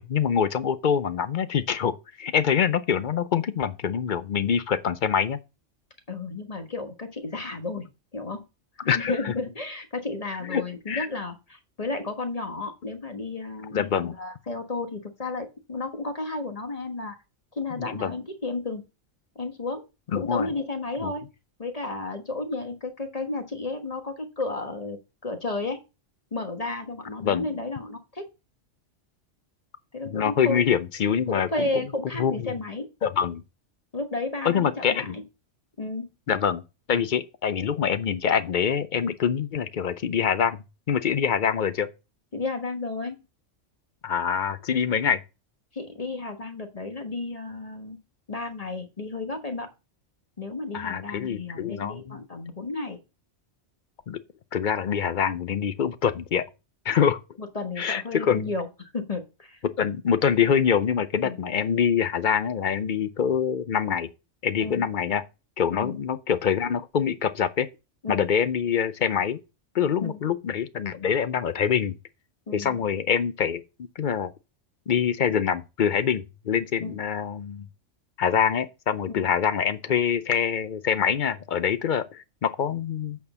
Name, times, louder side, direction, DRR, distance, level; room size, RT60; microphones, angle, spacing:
voice 1, 0.0-1.9 2.2-5.4 8.8-9.3 10.5-11.1 13.7-14.1 17.8-18.1 20.1-20.5 21.0-21.1 27.2-27.5 30.0-31.7 32.2-32.5 33.0-33.4 34.4-35.2 36.3-36.6 36.9-41.9 44.0-45.2 50.7-52.2 54.1-54.2 54.5-56.4 56.8-57.2 57.8-58.5 59.8-64.1 64.4-65.2 65.6-67.7 68.1-69.4 69.7-71.9 72.5-73.6 74.0-74.3 74.9-77.7 78.2-83.2, left 7 dB, 55° left, 0.6 m, -25 dB
voice 2, 6.1-8.4 8.8-17.2 17.5-18.8 19.3-19.8 20.1-21.3 21.6-25.8 26.3-28.2 29.9-30.6 31.3-32.9 33.9-35.2 35.8-36.1 42.3-43.2 45.7-48.0 48.3-49.7 50.4-53.0 57.4-59.6 61.2-61.4 64.6-64.8 65.7-65.9 68.0-68.2 70.0-70.2 72.5-72.8 76.8-77.0 79.1-79.3, left 3 dB, 30° left, 1.3 m, -32 dB
8.3 x 4.5 x 6.8 m
omnidirectional pair, 1.3 m